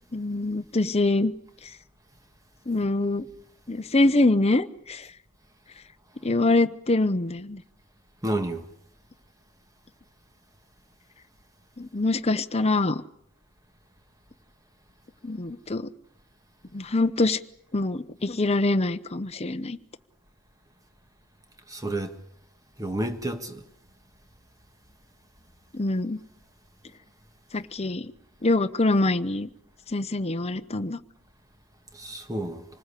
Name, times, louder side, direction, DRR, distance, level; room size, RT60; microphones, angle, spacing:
voice 1, 0.1-1.3 2.7-3.3 3.7-5.1 6.2-7.6 11.8-13.0 15.2-15.9 16.7-17.4 17.7-19.8 25.7-26.2 27.5-28.1 28.4-29.5 29.9-31.0, left 2 dB, 30° left, 0.9 m, -24 dB
voice 2, 8.2-8.7 21.7-22.1 22.8-23.6 32.0-32.6, right 1 dB, 15° right, 1.7 m, -30 dB
26.5 x 20.0 x 8.4 m
head